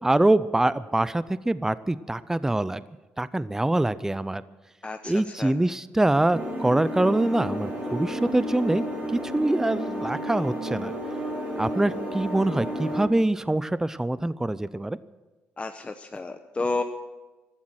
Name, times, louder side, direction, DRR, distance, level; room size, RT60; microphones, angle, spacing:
voice 1, 0.0-2.8 3.2-4.4 5.0-8.8 9.1-10.9 11.6-15.0, right 1 dB, 10° right, 16 dB, 0.6 m, -24 dB
voice 2, 4.8-5.1 5.4-5.5 15.6-16.8, left 3 dB, 25° left, 6 dB, 0.9 m, -31 dB
sound 1, 6.3-13.0, right 1 dB, 35° right, 5.3 m, -32 dB
16.5 x 13.0 x 6.4 m, 1.2 s
supercardioid pair, 70°, 5 cm